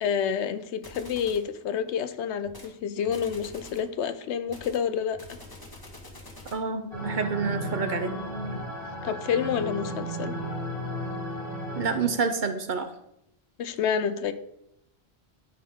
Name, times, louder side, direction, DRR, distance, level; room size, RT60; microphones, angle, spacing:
voice 1, 0.0-5.4 9.0-10.4 13.6-14.3, left 7 dB, 85° left, 10 dB, 0.9 m, -29 dB
sound 1, 0.8-1.5 2.4-2.7 3.1-3.9 4.5-6.7, left 1 dB, 20° left, 1.2 m, -46 dB
voice 2, 6.5-8.1 11.8-12.9, right 5 dB, 50° right, 8 dB, 0.8 m, -28 dB
sound 2, 6.9-12.3, equal, 50° left, 2.7 m, -34 dB
12.5 x 4.3 x 3.6 m, 0.79 s
omnidirectional pair, 1.1 m